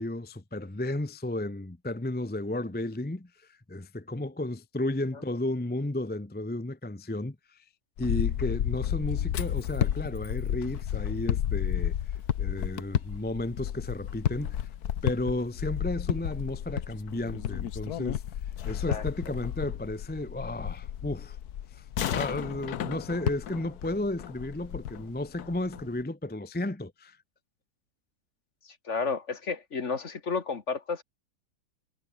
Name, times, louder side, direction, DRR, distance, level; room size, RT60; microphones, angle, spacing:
voice 1, 0.0-7.6 8.0-11.9 12.4-14.6 15.0-18.2 18.6-21.4 21.7-27.2, left 1 dB, 10° left, 0.6 m, -33 dB
sound 1, 8.0-26.0, left 10 dB, 65° left, 1.4 m, -32 dB
voice 2, 28.9-31.0, left 4 dB, 40° left, 1.9 m, -31 dB
omnidirectional pair, 1.9 m